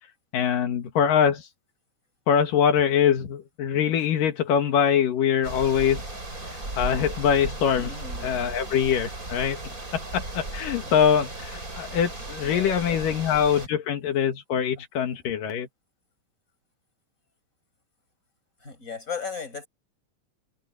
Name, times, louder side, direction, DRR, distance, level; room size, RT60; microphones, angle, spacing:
voice 1, 0.3-1.5 2.3-6.0 6.8-7.9 8.2-9.6 9.9-15.7, left 8 dB, 80° left, 3.4 m, -23 dB
sound 1, 5.4-13.7, right 2 dB, 25° right, 6.1 m, -36 dB
voice 2, 7.8-8.8 10.8-10.9 12.4-13.6 14.7-14.8 18.6-19.7, left 5 dB, 20° left, 5.9 m, -38 dB
omnidirectional pair, 3.8 m